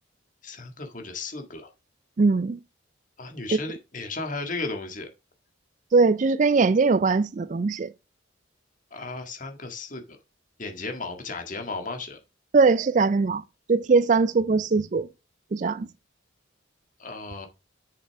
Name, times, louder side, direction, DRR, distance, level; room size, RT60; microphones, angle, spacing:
voice 1, 0.4-1.7 3.2-5.1 8.9-10.2 10.6-12.2 17.0-17.5, left 3 dB, 40° left, 1.8 m, -35 dB
voice 2, 2.2-2.6 5.9-7.9 12.5-13.4 13.7-15.1 15.5-15.9, right 4 dB, 40° right, 0.3 m, -21 dB
7.8 x 7.0 x 3.5 m
head